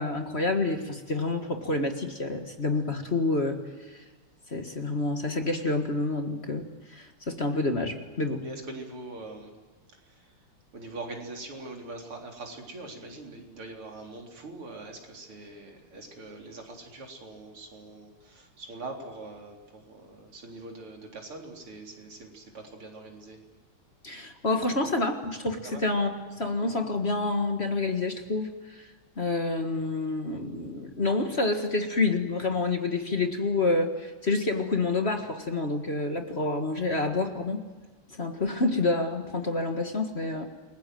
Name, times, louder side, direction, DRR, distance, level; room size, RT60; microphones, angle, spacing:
voice 1, 0.0-3.6 3.8-4.0 4.5-8.4 24.0-28.9 29.2-37.6 38.1-40.5, left 3 dB, 30° left, 5 dB, 1.7 m, -28 dB
voice 2, 8.4-9.6 10.1-10.3 10.7-23.4 25.6-25.8, right 2 dB, 85° right, 1 dB, 4.5 m, -42 dB
29.0 x 21.5 x 7.7 m, 1.3 s
omnidirectional pair, 2.3 m